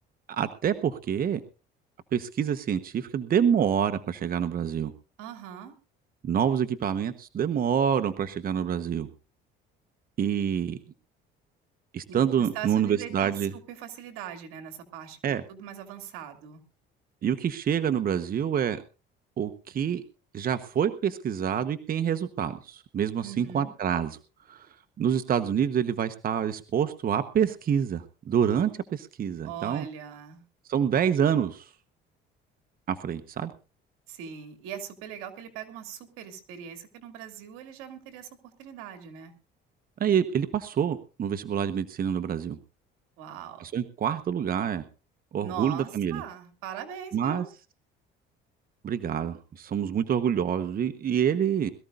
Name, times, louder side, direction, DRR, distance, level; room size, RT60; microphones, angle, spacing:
voice 1, 0.3-1.4 2.1-4.9 6.2-9.1 10.2-10.8 11.9-13.5 15.2-15.4 17.2-18.8 19.4-20.0 20.3-24.2 24.5-24.7 25.0-29.9 30.7-31.7 32.9-33.5 40.0-42.6 43.6-44.8 45.3-46.2 47.1-47.5 48.8-51.7, right 8 dB, 45° right, 10 dB, 1.1 m, -27 dB
voice 2, 5.2-5.7 12.1-16.6 23.2-23.7 29.4-30.4 34.1-39.3 43.2-43.7 45.4-47.5, right 9 dB, 85° right, 7 dB, 2.6 m, -41 dB
22.0 x 14.0 x 2.6 m, 0.33 s
cardioid pair, 95°, 21 cm